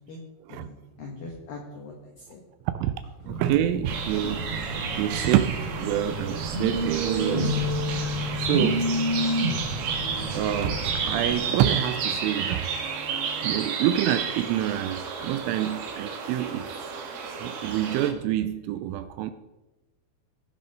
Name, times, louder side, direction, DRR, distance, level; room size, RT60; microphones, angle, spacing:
voice 1, 0.5-2.4, left 3 dB, 75° left, 2.1 m, -42 dB
Telephone, 3.3-11.3, right 1 dB, 30° right, 1.8 m, -30 dB
voice 2, 3.3-4.5 5.0-7.6 8.4-8.9 10.3-12.7 13.4-16.7 17.3-19.3, right 12 dB, 85° right, 2.9 m, -27 dB
sound 1, 3.9-18.1, right 6 dB, 65° right, 2.8 m, -32 dB
sound 2, 7.3-13.6, left 5 dB, 60° left, 2.7 m, -35 dB
18.5 x 6.3 x 5.3 m
omnidirectional pair, 6.0 m